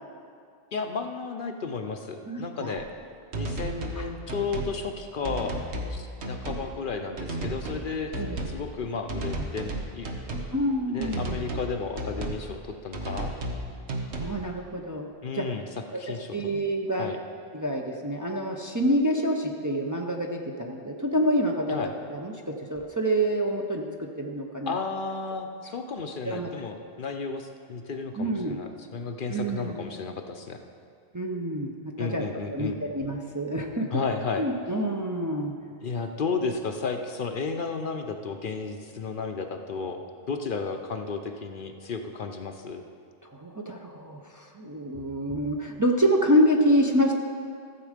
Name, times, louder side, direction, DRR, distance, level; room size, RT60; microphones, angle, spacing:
voice 1, 0.7-2.9 3.3-5.6 5.9-10.1 10.9-13.3 15.2-15.6 15.9-16.4 17.0-17.2 21.7-21.9 24.7-30.6 32.0-32.8 33.9-34.4 35.8-40.0 40.3-42.8, left 4 dB, 55° left, 5 dB, 0.8 m, -33 dB
voice 2, 2.3-2.8 4.0-4.1 8.2-8.4 10.5-11.4 14.2-15.1 15.3-15.5 15.9-17.1 17.5-21.8 22.1-24.7 26.2-26.5 28.2-28.6 29.3-29.8 31.1-32.2 32.5-34.0 34.4-35.5 43.3-47.1, equal, 20° right, 1 dB, 0.6 m, -27 dB
sound 1, 2.8-2.9 3.3-4.0 4.3-4.7 5.2-5.9 6.2-6.6 7.2-7.8 8.1-8.6 9.1-10.5 11.0-11.7 12.0-12.4 12.9-13.6 13.9-14.3, right 1 dB, 80° right, 1.4 m, -33 dB
14.0 x 7.4 x 5.0 m, 2.2 s
omnidirectional pair, 1.1 m